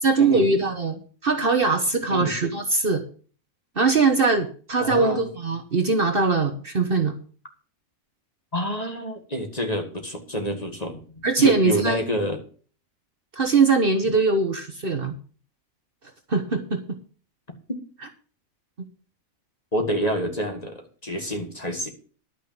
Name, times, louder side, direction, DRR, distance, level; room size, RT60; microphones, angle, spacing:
voice 1, 0.0-3.0 3.7-7.1 11.2-12.0 13.3-15.2 16.3-17.0, right 4 dB, 45° right, 6 dB, 1.4 m, -21 dB
voice 2, 4.8-5.2 8.5-12.4 19.7-21.9, equal, 30° left, 3 dB, 2.0 m, -27 dB
11.5 x 6.0 x 7.3 m, 0.40 s
omnidirectional pair, 1.4 m